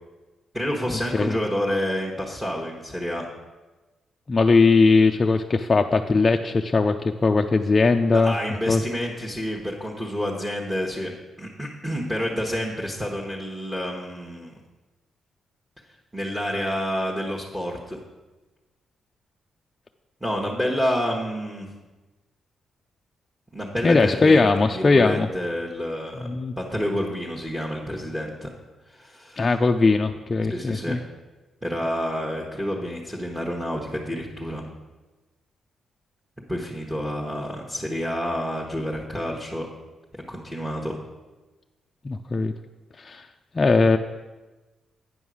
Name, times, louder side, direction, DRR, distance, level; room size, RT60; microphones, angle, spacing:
voice 1, 0.5-3.3 8.1-11.1 11.4-14.5 16.1-18.0 20.2-21.7 23.5-26.3 26.6-28.5 28.9-29.5 30.5-31.0 31.6-34.6 36.5-39.7 40.3-40.9, equal, 5° right, -3 dB, 1.1 m, -29 dB
voice 2, 4.3-7.0 7.2-8.3 8.7-8.8 23.8-25.3 26.2-26.5 29.4-31.0 42.0-42.5 43.0-43.3 43.5-44.0, left 3 dB, 30° left, 4 dB, 0.4 m, -19 dB
9.1 x 5.5 x 6.3 m, 1.2 s
cardioid pair, 120°, 0 cm